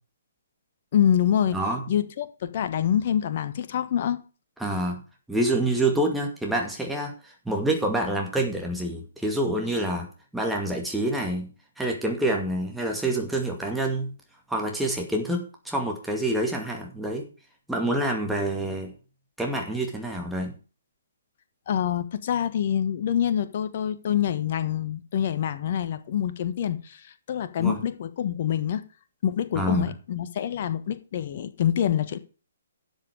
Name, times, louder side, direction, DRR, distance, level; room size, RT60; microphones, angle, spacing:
voice 1, 0.9-1.6 1.9-4.2 21.7-28.8 29.2-32.2, left 9 dB, 45° left, 1.3 m, -26 dB
voice 2, 4.6-5.0 5.3-10.1 10.3-11.5 11.8-14.1 14.5-17.3 17.7-18.9 19.4-20.5 27.6-27.8 29.6-29.9, right 1 dB, 5° right, 2.2 m, -27 dB
12.5 x 7.6 x 4.9 m
figure-of-eight pair, 130°, 0 cm